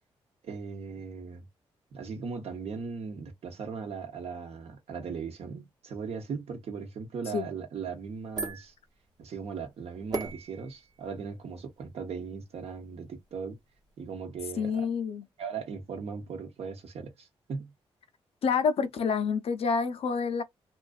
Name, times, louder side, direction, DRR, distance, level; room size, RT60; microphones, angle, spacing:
voice 1, 0.4-1.5 1.9-8.7 9.2-13.6 14.0-14.9 15.4-17.7, right 5 dB, 70° right, 0.9 m, -38 dB
sound 1, 7.9-14.1, right 3 dB, 40° right, 0.8 m, -42 dB
voice 2, 14.6-15.3 18.4-20.4, left 6 dB, 65° left, 0.5 m, -28 dB
2.5 x 2.3 x 2.3 m
cardioid pair, 70°, 11 cm